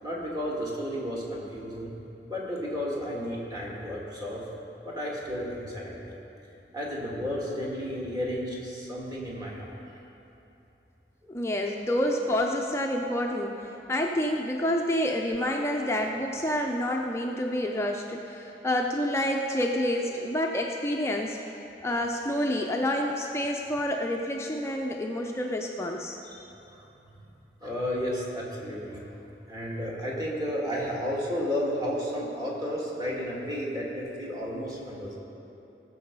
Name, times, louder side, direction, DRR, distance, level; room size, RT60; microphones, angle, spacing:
voice 1, 0.0-1.9 2.3-4.4 4.8-6.2 6.7-9.7 20.0-20.1 26.2-26.5 26.7-26.9 27.6-29.1 29.5-35.2, equal, 20° right, -5 dB, 2.3 m, -32 dB
voice 2, 11.3-21.4 21.8-26.2, left 1 dB, 15° left, 1 dB, 0.5 m, -28 dB
18.5 x 6.9 x 5.4 m, 3.0 s
head